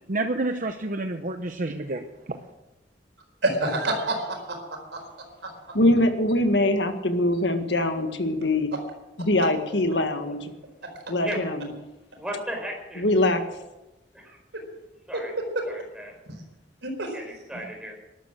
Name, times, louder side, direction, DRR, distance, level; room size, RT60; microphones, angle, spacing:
voice 1, 0.1-2.4, right 2 dB, 50° right, 6 dB, 0.9 m, -29 dB
voice 2, 3.4-5.0 14.5-14.6 16.3-16.4 16.8-17.1, right 2 dB, 80° right, 4 dB, 4.4 m, -28 dB
voice 3, 5.7-8.7 9.2-10.5 11.1-11.7 13.0-13.4, left 1 dB, 75° left, 7 dB, 1.8 m, -23 dB
voice 4, 11.2-11.6 12.2-13.0 14.1-14.4 15.1-15.3 15.6-16.1 17.1-18.0, equal, 5° right, 1 dB, 4.9 m, -35 dB
13.5 x 12.0 x 7.7 m, 0.99 s
head